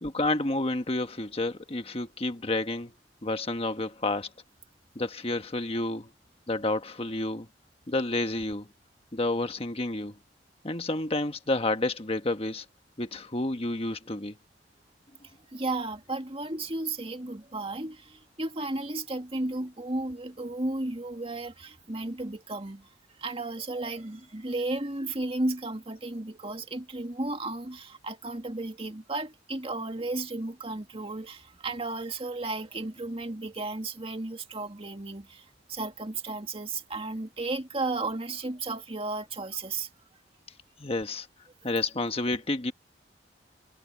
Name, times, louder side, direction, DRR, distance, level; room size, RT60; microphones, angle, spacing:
voice 1, 0.0-2.9 3.2-4.3 4.9-6.1 6.5-7.5 7.9-8.7 9.1-10.1 10.6-12.6 13.0-14.3 40.8-41.3 41.6-42.7, left 2 dB, 35° left, 1.3 m, -30 dB
voice 2, 15.5-22.9 23.2-39.9, right 2 dB, 30° right, 2.2 m, -34 dB
head